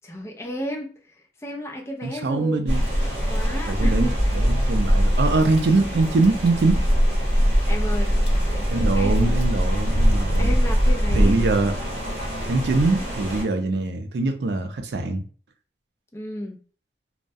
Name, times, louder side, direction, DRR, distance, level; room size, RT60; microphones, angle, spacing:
voice 1, 0.0-1.2 1.4-4.3 7.7-8.2 8.5-8.7 8.9-9.3 10.4-11.4 12.4-12.6 16.1-16.6, equal, 15° left, 0.4 m, -33 dB
voice 2, 2.0-2.8 3.7-6.8 8.7-10.5 11.1-11.7 12.5-15.2, right 3 dB, 75° right, 0.4 m, -23 dB
sound 1, 2.7-13.4, equal, 35° right, 0.8 m, -22 dB
Water / Drip, 2.8-10.8, left 1 dB, 70° left, 0.5 m, -38 dB
2.3 x 2.1 x 2.6 m
head